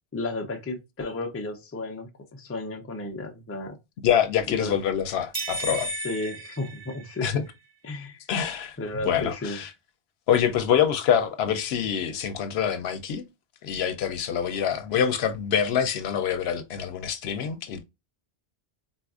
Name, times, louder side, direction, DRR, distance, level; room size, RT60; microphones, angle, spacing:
voice 1, 0.1-3.8 4.5-4.7 5.7-5.8 6.0-7.4 7.8-8.2 8.8-9.6, left 2 dB, 20° left, 0.4 m, -33 dB
voice 2, 4.0-5.9 7.2-7.4 8.3-8.8 9.0-9.7 10.3-13.2 13.6-17.8, left 8 dB, 80° left, 0.8 m, -25 dB
sound 1, 5.3-7.5, right 1 dB, 20° right, 0.9 m, -34 dB
4.0 x 2.4 x 2.3 m
omnidirectional pair, 1.1 m